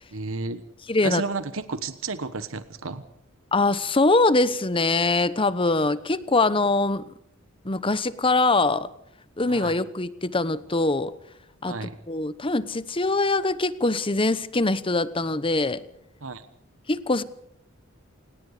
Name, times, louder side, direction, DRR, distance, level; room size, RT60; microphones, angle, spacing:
voice 1, 0.1-0.6 1.0-3.0 9.5-9.7 11.6-12.0 16.2-16.4, right 3 dB, 70° right, 11 dB, 1.3 m, -32 dB
voice 2, 0.9-1.2 3.5-7.0 7.6-8.9 9.4-11.1 11.6-11.7 12.1-15.8 16.9-17.2, left 2 dB, 25° left, 15 dB, 1.0 m, -23 dB
28.0 x 18.5 x 5.1 m, 0.71 s
head